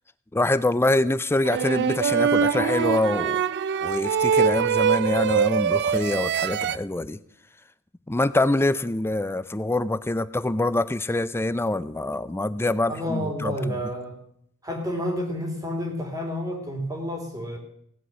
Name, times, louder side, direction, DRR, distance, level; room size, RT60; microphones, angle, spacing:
voice 1, 0.3-3.4 3.8-7.2 8.1-13.8, left 2 dB, 10° left, 15 dB, 0.4 m, -25 dB
sound 1, 1.4-6.8, right 7 dB, 55° right, 0.5 m, -23 dB
voice 2, 12.9-14.1 14.6-17.6, equal, 15° right, 2 dB, 3.3 m, -30 dB
17.0 x 8.1 x 7.5 m, 0.69 s
head